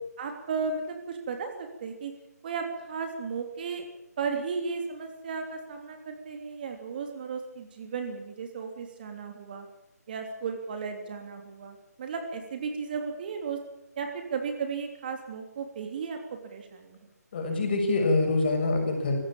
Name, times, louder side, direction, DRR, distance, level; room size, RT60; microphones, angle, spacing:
voice 1, 0.2-2.1 2.4-3.9 4.2-9.7 10.1-13.6 14.0-17.0, right 5 dB, 35° right, 4 dB, 3.1 m, -35 dB
voice 2, 17.3-19.2, left 2 dB, 35° left, 3 dB, 6.5 m, -25 dB
21.5 x 16.5 x 8.8 m, 0.87 s
figure-of-eight pair, 155°, 9 cm